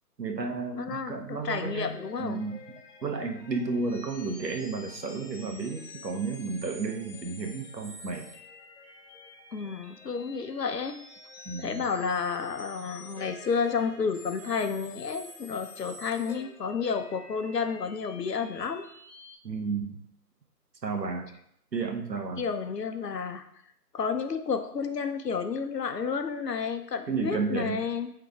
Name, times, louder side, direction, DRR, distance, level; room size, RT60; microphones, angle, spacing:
voice 1, 0.2-2.6 3.0-8.3 11.4-11.9 19.4-20.0 20.8-21.3 21.7-22.4 27.1-27.8, right 4 dB, 90° right, 4 dB, 1.4 m, -32 dB
voice 2, 0.7-2.5 9.5-11.0 11.6-18.9 22.4-23.4 23.9-28.1, left 5 dB, 75° left, 8 dB, 0.9 m, -31 dB
sound 1, 1.5-19.3, left 2 dB, 45° left, 2.2 m, -49 dB
8.8 x 3.8 x 3.6 m, 0.74 s
hypercardioid pair, 180°, 49 cm